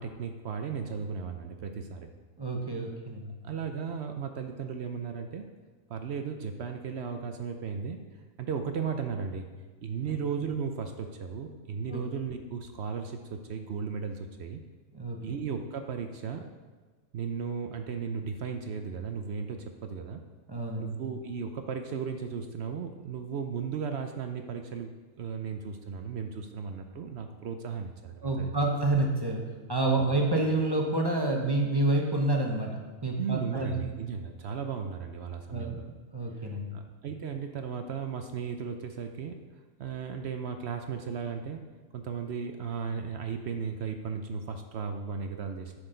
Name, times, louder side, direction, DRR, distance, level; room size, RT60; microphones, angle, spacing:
voice 1, 0.0-2.1 3.4-5.5 5.9-8.0 8.4-9.5 9.8-14.6 15.2-16.4 17.1-20.2 20.8-28.5 30.0-30.1 33.2-35.8 36.4-39.4 39.8-41.6 41.9-45.8, right 6 dB, 60° right, 6 dB, 0.7 m, -35 dB
voice 2, 2.4-3.4 11.9-12.0 14.9-15.4 20.5-20.9 28.2-29.4 29.7-32.7 33.0-33.8 35.5-35.8 36.1-36.8, right 2 dB, 20° right, 1 dB, 0.8 m, -28 dB
9.8 x 6.3 x 3.9 m, 1.3 s
omnidirectional pair, 1.5 m